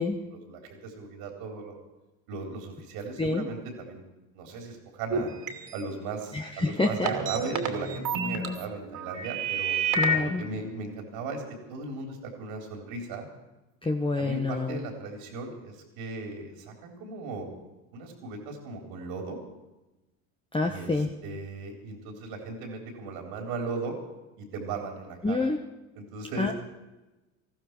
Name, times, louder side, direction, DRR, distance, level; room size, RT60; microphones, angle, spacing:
voice 1, 0.0-1.8 2.3-4.0 4.3-5.3 5.7-9.8 10.4-11.4 11.7-13.2 14.2-17.5 17.9-19.4 20.6-20.9 21.2-23.9 24.4-25.5 25.9-26.5, right 3 dB, 70° right, 2 dB, 3.5 m, -37 dB
sound 1, 5.1-5.8 7.1-8.5 8.8-10.3, right 3 dB, 55° right, 2.8 m, -29 dB
voice 2, 6.3-7.1 9.9-10.4 13.8-14.8 20.5-21.1 25.2-25.6 26.4-26.5, left 2 dB, 15° left, 2 dB, 1.3 m, -27 dB
20.0 x 14.5 x 4.6 m, 1.0 s
hypercardioid pair, 80°, 39 cm